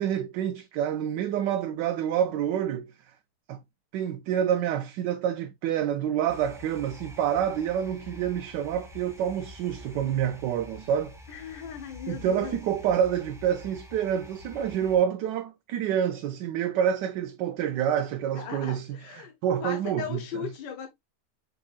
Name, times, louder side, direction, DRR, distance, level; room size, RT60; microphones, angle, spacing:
voice 1, 0.0-2.9 3.5-3.6 3.9-11.2 12.1-18.9 19.2-20.5, right 9 dB, 85° right, 1.2 m, -27 dB
sound 1, 6.3-15.0, left 2 dB, 5° right, 0.4 m, -47 dB
voice 2, 11.3-12.6 18.3-19.3 19.6-20.9, left 8 dB, 80° left, 1.4 m, -37 dB
5.5 x 3.9 x 2.3 m
omnidirectional pair, 1.8 m